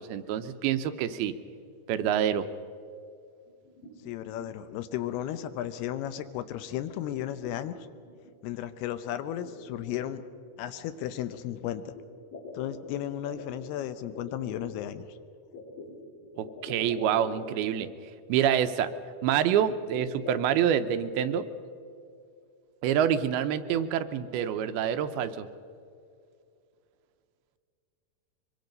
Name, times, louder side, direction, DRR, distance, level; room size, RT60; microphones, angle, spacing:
voice 1, 0.0-1.3 1.9-2.5 16.4-17.9 18.3-18.9 19.2-21.4 22.8-25.5, right 9 dB, 85° right, 11 dB, 2.7 m, -27 dB
sound 1, 3.5-4.7 5.1-5.5 5.9-6.4 6.7-8.3 8.8-8.9 9.2-10.5 11.6-14.7 15.5-17.9 18.3-18.4 18.6-18.7 19.3-20.7, left 2 dB, 60° left, 5.2 m, -45 dB
voice 2, 4.0-7.7 8.4-10.2 10.6-11.9 12.5-15.2, left 11 dB, 85° left, 11 dB, 2.8 m, -34 dB
23.5 x 23.5 x 5.3 m, 2.4 s
omnidirectional pair, 4.5 m